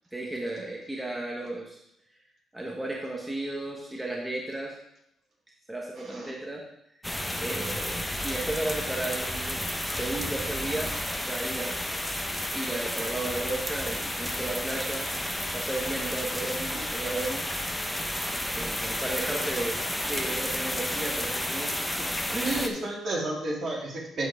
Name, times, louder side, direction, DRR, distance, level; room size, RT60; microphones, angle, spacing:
voice 1, 0.1-1.8 2.5-4.7 5.7-6.6 7.0-11.8 12.5-15.1 15.5-17.5 18.5-22.7, right 2 dB, 10° right, -1 dB, 1.3 m, -34 dB
voice 2, 6.0-6.3 16.7-16.9 22.4-24.3, right 2 dB, 55° right, -3 dB, 2.8 m, -32 dB
sound 1, 7.0-22.7, left 1 dB, 5° left, 0.9 m, -31 dB
11.5 x 4.6 x 3.6 m, 0.78 s
cardioid pair, 90°, 0 cm